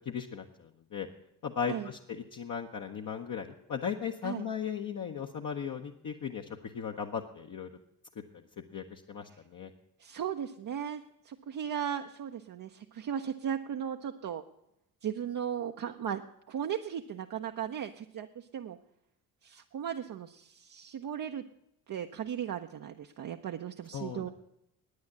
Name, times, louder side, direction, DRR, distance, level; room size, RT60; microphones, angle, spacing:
voice 1, 0.1-1.1 1.4-6.5 6.7-7.7 8.7-9.7 23.9-24.3, left 7 dB, 40° left, 2 dB, 1.0 m, -37 dB
voice 2, 10.0-14.4 15.0-16.2 16.5-18.8 19.4-21.4 21.9-24.3, right 9 dB, 40° right, 4 dB, 0.8 m, -36 dB
9.7 x 9.5 x 8.5 m, 0.79 s
hypercardioid pair, 45°, 48 cm